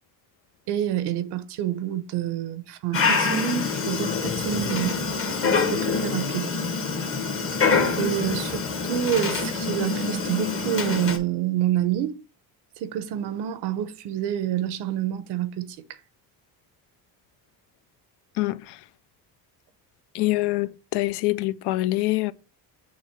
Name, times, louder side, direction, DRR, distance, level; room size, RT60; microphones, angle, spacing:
voice 1, 0.7-5.0 5.4-6.5 8.0-12.2 12.8-16.0, right 10 dB, 90° right, 0.8 m, -28 dB
Dog, 2.9-11.2, left 4 dB, 35° left, 1.0 m, -25 dB
voice 2, 18.4-18.8 20.1-22.3, left 18 dB, 90° left, 0.5 m, -25 dB
7.0 x 3.0 x 4.4 m
cardioid pair, 125°, 39 cm